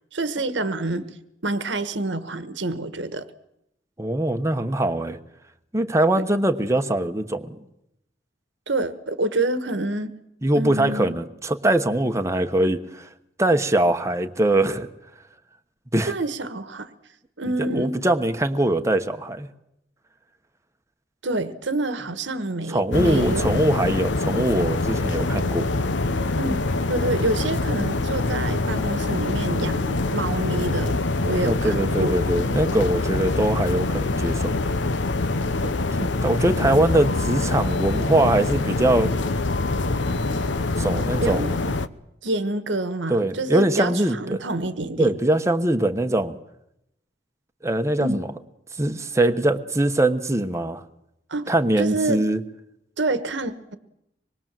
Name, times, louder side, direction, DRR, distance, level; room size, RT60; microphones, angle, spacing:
voice 1, 0.1-1.1 1.4-3.3 6.2-6.3 8.7-10.1 10.5-11.1 16.1-16.9 17.4-18.0 21.2-23.5 26.3-32.2 35.6-35.7 41.2-41.5 42.2-45.1 48.0-48.2 51.3-52.2 53.0-53.8, right 2 dB, 70° right, 12 dB, 1.4 m, -27 dB
voice 2, 4.0-5.2 5.7-7.5 10.4-13.1 13.4-14.9 15.9-16.1 17.7-19.5 22.7-25.7 31.4-34.6 36.0-39.1 40.8-41.6 43.1-44.4 45.0-46.4 47.6-48.2 48.8-50.8 51.5-52.4, right 1 dB, 15° right, 7 dB, 1.1 m, -22 dB
sound 1, 22.9-41.9, left 2 dB, 75° left, 0.9 m, -24 dB
25.5 x 21.5 x 7.6 m, 0.82 s
head